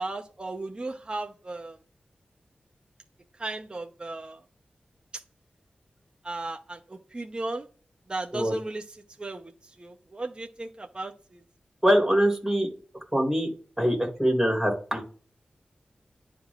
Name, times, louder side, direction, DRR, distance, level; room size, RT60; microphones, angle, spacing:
voice 1, 0.0-1.8 3.4-4.4 6.2-7.7 8.1-8.8 9.2-9.5 9.8-11.4, right 2 dB, 30° right, 3 dB, 0.8 m, -35 dB
voice 2, 11.8-12.7 13.1-13.5 13.8-15.1, equal, 10° right, 0 dB, 3.5 m, -23 dB
11.0 x 3.7 x 2.4 m, 0.39 s
wide cardioid pair, 70°, 3 cm